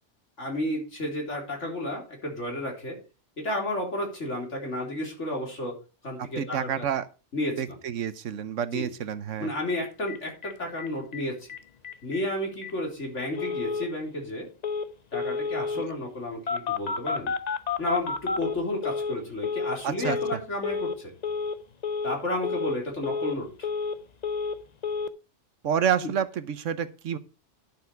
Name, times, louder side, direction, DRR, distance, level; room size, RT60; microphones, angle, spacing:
voice 1, 0.4-3.0 3.4-5.8 6.0-6.9 7.3-7.8 8.7-8.9 9.4-11.5 12.0-14.5 15.1-17.3 17.8-21.1 22.0-23.7 26.0-26.1, left 1 dB, 75° left, 0 dB, 3.9 m, -32 dB
voice 2, 6.4-7.1 7.6-9.5 19.8-20.2 25.6-27.2, right 8 dB, 90° right, 13 dB, 1.3 m, -28 dB
Telephone, 9.7-9.8 10.1-10.2 10.4-10.5 10.8-11.2 11.5-11.6 11.8-12.2 12.6-12.7 13.2-13.9 14.6-14.9 15.1-15.9 16.5-19.2 19.4-19.8 20.0-20.4 20.6-21.0 21.2-21.6 21.8-22.2 22.4-22.8 23.0-24.0 24.2-24.6 24.8-25.1, left 5 dB, 40° left, 0.8 m, -30 dB
11.5 x 7.0 x 4.7 m, 0.32 s
omnidirectional pair, 1.2 m